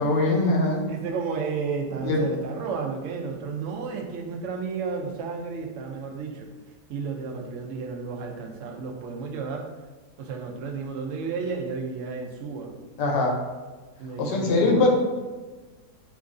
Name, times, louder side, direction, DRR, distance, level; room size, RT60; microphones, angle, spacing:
voice 1, 0.0-0.9 2.0-2.2 13.0-13.4 14.2-14.9, left 2 dB, 80° left, 0 dB, 1.2 m, -22 dB
voice 2, 0.9-6.5 6.9-9.7 10.2-12.7 14.0-14.9, right 5 dB, 75° right, 1 dB, 0.7 m, -32 dB
3.0 x 2.5 x 3.6 m, 1.3 s
omnidirectional pair, 1.8 m